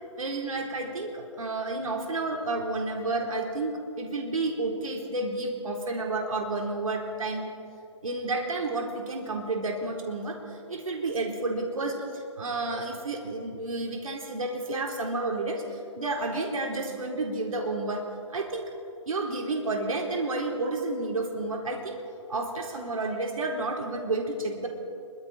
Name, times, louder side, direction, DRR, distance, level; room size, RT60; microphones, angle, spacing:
voice 1, 0.2-7.5 8.0-10.4 10.7-18.0 18.3-18.7 19.1-22.0 22.3-24.7, right 2 dB, 90° right, 1 dB, 3.9 m, -31 dB
26.5 x 24.0 x 4.3 m, 2.6 s
hypercardioid pair, 175°, 17 cm